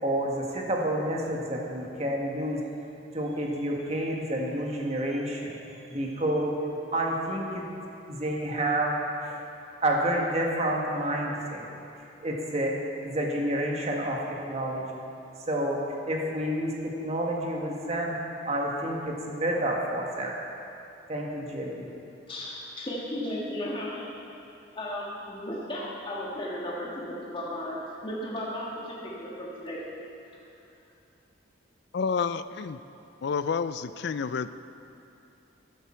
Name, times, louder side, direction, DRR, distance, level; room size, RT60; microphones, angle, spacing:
voice 1, 0.0-2.6 3.1-5.6 5.9-7.7 8.1-9.0 9.2-9.4 9.8-11.7 12.2-12.8 13.0-14.9 15.5-15.8 16.1-18.2 18.4-20.4 21.1-21.9, right 1 dB, 35° right, -1 dB, 1.6 m, -29 dB
voice 2, 22.3-24.1 24.8-29.8, left 1 dB, 25° left, -5 dB, 1.7 m, -35 dB
voice 3, 31.9-32.8 33.2-34.5, left 5 dB, 60° left, 13 dB, 0.4 m, -29 dB
13.5 x 10.5 x 4.5 m, 2.7 s
head